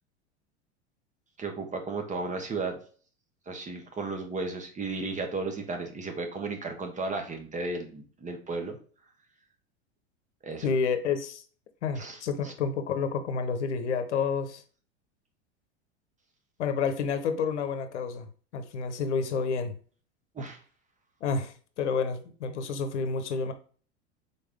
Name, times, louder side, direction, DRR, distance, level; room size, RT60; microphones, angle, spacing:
voice 1, 1.4-2.8 3.5-8.8 10.4-10.7 12.0-12.2 12.4-12.5 20.3-20.6, right 3 dB, 20° right, 4 dB, 1.0 m, -34 dB
voice 2, 10.6-11.4 11.8-14.6 16.6-18.3 18.5-19.7 21.2-23.5, left 5 dB, 80° left, 9 dB, 0.8 m, -29 dB
4.0 x 3.5 x 3.4 m, 0.41 s
hypercardioid pair, 95°, 34 cm